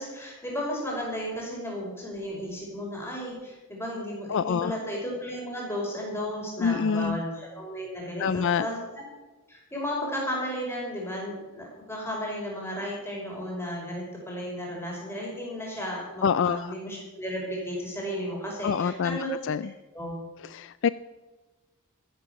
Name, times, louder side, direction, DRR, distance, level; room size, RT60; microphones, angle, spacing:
voice 1, 0.0-9.0 9.5-19.3 19.9-20.1, equal, 10° left, -3 dB, 5.4 m, -34 dB
voice 2, 4.3-4.7 6.6-7.2 8.2-8.7 16.2-16.7 18.6-19.6 20.5-20.9, left 6 dB, 55° left, 16 dB, 0.3 m, -26 dB
14.0 x 11.5 x 7.0 m, 1.2 s
head